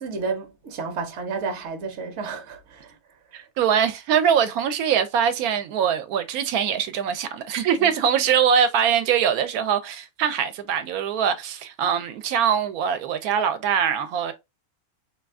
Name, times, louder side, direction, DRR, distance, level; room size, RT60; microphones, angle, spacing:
voice 1, 0.0-3.0 7.8-7.9, right 4 dB, 60° right, 0.9 m, -31 dB
voice 2, 3.3-14.3, right 8 dB, 80° right, 1.1 m, -23 dB
2.6 x 2.4 x 3.4 m
omnidirectional pair, 1.6 m